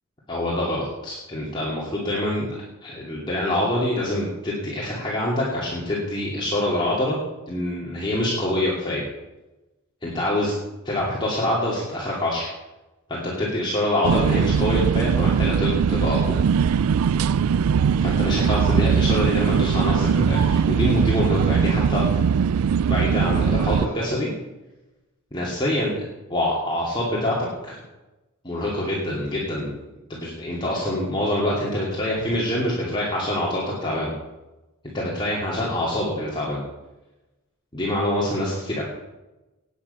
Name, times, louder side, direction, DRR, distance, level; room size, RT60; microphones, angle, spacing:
voice 1, 0.3-7.2 7.5-9.0 10.0-10.5 10.8-12.5 13.1-16.4 18.0-22.0 22.9-24.3 25.3-26.0 26.3-27.8 28.4-29.7 30.1-34.1 34.9-36.6 37.7-38.8, left 1 dB, 20° left, -5 dB, 2.5 m, -25 dB
sound 1, 14.0-23.9, right 6 dB, 85° right, 0.4 m, -20 dB
18.5 x 8.8 x 5.6 m, 1.1 s
head